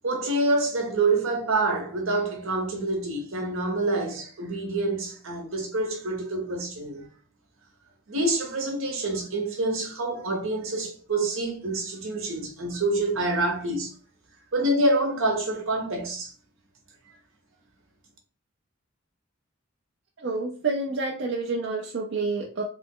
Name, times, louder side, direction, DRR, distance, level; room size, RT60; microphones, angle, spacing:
voice 1, 0.0-7.1 8.1-13.9 14.5-16.3, right 2 dB, 75° right, 0.9 m, -27 dB
voice 2, 20.2-22.6, right 3 dB, 55° right, 0.5 m, -28 dB
3.2 x 2.0 x 3.7 m
head